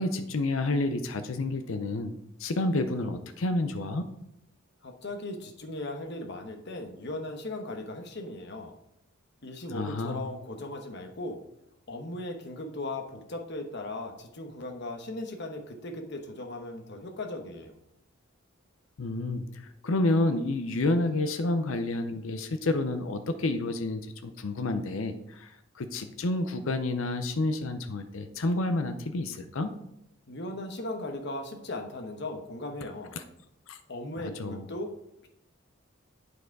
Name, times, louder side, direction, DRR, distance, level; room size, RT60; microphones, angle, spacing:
voice 1, 0.0-2.1 2.4-4.1 9.7-10.3 19.0-29.7 33.7-33.8 34.2-34.7, left 2 dB, 70° left, 8 dB, 0.6 m, -29 dB
voice 2, 4.8-8.7 9.4-11.4 11.9-17.7 30.3-33.2 33.9-34.9, left 2 dB, 55° left, 4 dB, 1.1 m, -37 dB
8.9 x 4.8 x 4.7 m, 0.83 s
head